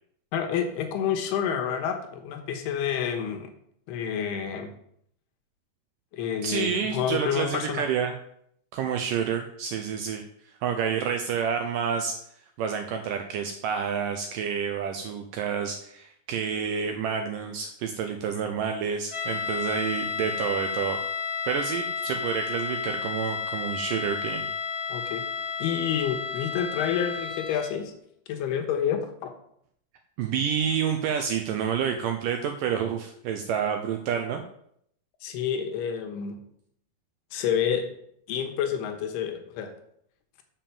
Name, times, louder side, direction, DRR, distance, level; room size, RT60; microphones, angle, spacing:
voice 1, 0.3-3.5 3.9-4.7 6.1-7.8 24.9-25.2 25.6-27.9 28.3-29.3 35.2-36.4 37.3-37.9 38.3-39.7, left 8 dB, 85° left, 5 dB, 3.1 m, -29 dB
voice 2, 6.4-8.1 8.7-10.2 10.6-12.1 12.6-21.0 21.5-24.5 30.2-34.4, right 7 dB, 85° right, 5 dB, 1.9 m, -29 dB
sound 1, 19.1-27.8, left 5 dB, 40° left, 2.0 m, -32 dB
7.1 x 5.7 x 7.0 m, 0.70 s
omnidirectional pair, 4.5 m